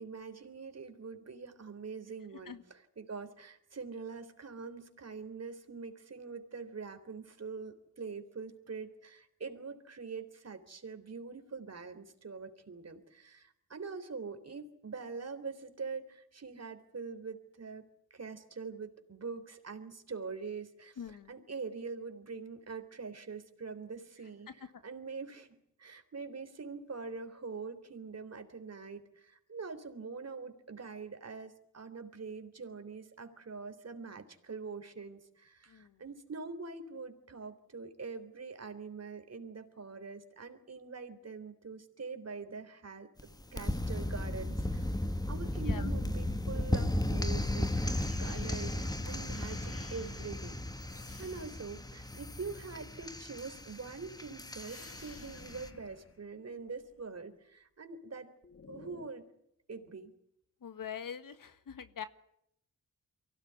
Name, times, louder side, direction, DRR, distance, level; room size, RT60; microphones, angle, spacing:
voice 1, 0.0-44.9 45.3-50.6 50.9-58.3 58.7-59.3 59.7-60.1, right 4 dB, 50° right, 8 dB, 3.6 m, -44 dB
voice 2, 21.0-21.4 35.7-36.0 45.6-45.9 60.6-62.1, left 8 dB, 75° left, 11 dB, 1.7 m, -44 dB
sound 1, 43.2-55.7, left 1 dB, 10° left, 1.5 m, -35 dB
sound 2, 47.7-53.0 53.3-57.0 58.4-59.1, left 4 dB, 40° left, 1.9 m, -53 dB
24.0 x 17.0 x 9.6 m, 0.76 s
cardioid pair, 70°, 33 cm